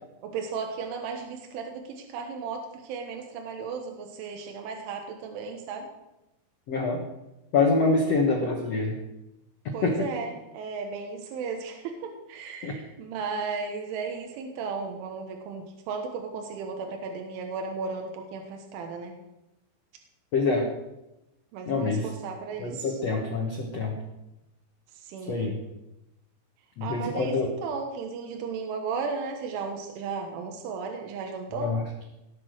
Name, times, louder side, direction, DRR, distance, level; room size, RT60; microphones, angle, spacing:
voice 1, 0.2-5.9 9.7-19.2 21.5-23.0 25.0-25.5 26.8-31.8, right 5 dB, 85° right, 3 dB, 3.8 m, -35 dB
voice 2, 6.7-7.0 7.5-8.9 9.8-10.0 12.6-12.7 20.3-20.7 21.7-22.1 22.6-23.9 25.3-25.5 26.8-27.5 31.6-31.8, left 3 dB, 80° left, 2 dB, 1.4 m, -25 dB
18.5 x 8.5 x 6.4 m, 0.95 s
omnidirectional pair, 5.4 m